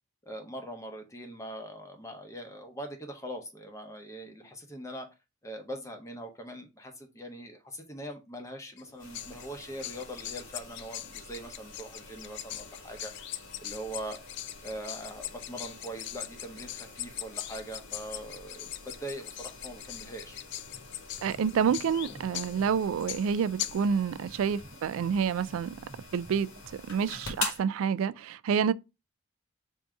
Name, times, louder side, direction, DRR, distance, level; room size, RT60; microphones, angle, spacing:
voice 1, 0.3-5.1 5.4-13.3 13.6-14.2 14.6-18.7 19.0-20.4, right 1 dB, 15° left, 0.7 m, -42 dB
sound 1, 8.8-23.9, left 13 dB, 55° left, 0.3 m, -42 dB
sound 2, 9.0-27.6, left 4 dB, 75° left, 1.3 m, -46 dB
sound 3, 20.3-27.4, right 1 dB, 50° right, 0.6 m, -53 dB
voice 2, 21.2-25.8 26.1-26.5 26.9-28.7, right 7 dB, 85° right, 0.3 m, -28 dB
3.6 x 2.6 x 4.5 m
head